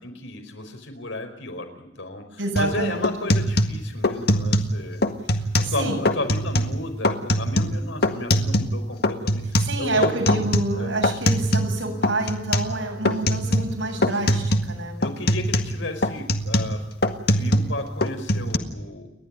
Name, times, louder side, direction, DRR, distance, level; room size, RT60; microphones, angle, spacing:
voice 1, 0.0-5.0 5.4-10.4 10.8-10.9 15.0-16.8 17.4-19.1, left 2 dB, 85° left, 5 dB, 5.0 m, -33 dB
voice 2, 2.4-3.1 5.3-6.0 9.6-15.0, right 2 dB, 85° right, 2 dB, 7.9 m, -28 dB
sound 1, 2.6-2.7 3.0-4.7 5.0-5.8 6.1-6.8 7.0-8.8 9.0-11.8 12.0-12.7 13.0-13.8 14.0-14.7 15.0-17.7 18.0-18.6, left 1 dB, 55° left, 1.7 m, -22 dB
29.5 x 12.0 x 9.9 m, 0.93 s
head